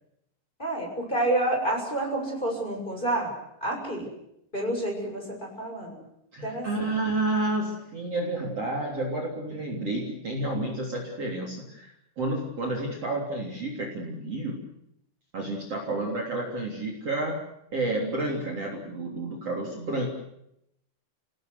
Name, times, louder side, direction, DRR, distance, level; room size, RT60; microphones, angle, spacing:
voice 1, 0.6-3.3 3.6-4.1 4.5-6.0 6.4-6.9, right 1 dB, 10° left, 1 dB, 6.7 m, -29 dB
voice 2, 6.3-11.9 12.2-14.6 15.3-20.1, right 2 dB, 35° right, 0 dB, 4.1 m, -30 dB
29.5 x 18.5 x 8.2 m, 0.79 s
omnidirectional pair, 5.0 m